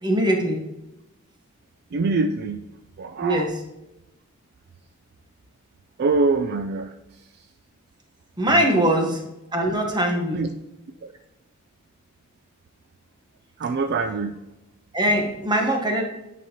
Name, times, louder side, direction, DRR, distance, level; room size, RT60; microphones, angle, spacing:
voice 1, 0.0-0.6 3.2-3.6 8.4-9.2 9.5-10.4 14.9-16.0, right 1 dB, 20° right, 2 dB, 1.0 m, -22 dB
voice 2, 1.9-2.6 3.0-3.5 6.0-6.9 8.7-8.8 10.3-10.5 11.0-11.1 13.6-14.3, right 3 dB, 50° right, 7 dB, 0.3 m, -24 dB
9.1 x 5.2 x 2.9 m, 0.93 s
head